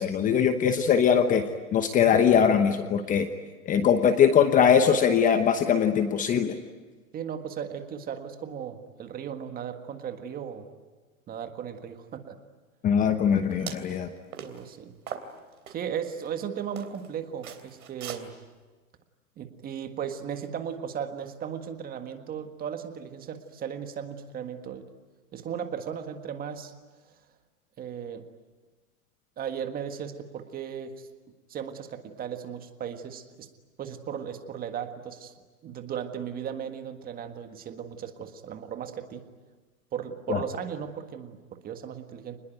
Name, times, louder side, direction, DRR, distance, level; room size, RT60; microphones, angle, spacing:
voice 1, 0.0-1.4 1.7-3.3 3.7-6.6 12.8-14.1 40.3-40.4, left 7 dB, 20° left, 8 dB, 1.0 m, -21 dB
voice 2, 7.1-10.6 11.3-12.4 14.4-14.9 15.7-18.3 19.4-24.9 25.3-26.7 27.8-28.3 29.4-31.1 31.5-33.5 33.8-35.3 35.6-39.2 39.9-42.4, right 8 dB, 20° right, 7 dB, 1.7 m, -36 dB
sound 1, 13.5-13.9 14.3-14.6 15.1-15.8 16.3-16.4 16.8-17.1 17.4-18.2, right 8 dB, 75° right, 3.4 m, -39 dB
28.0 x 20.5 x 9.1 m, 1.3 s
hypercardioid pair, 135°, 43 cm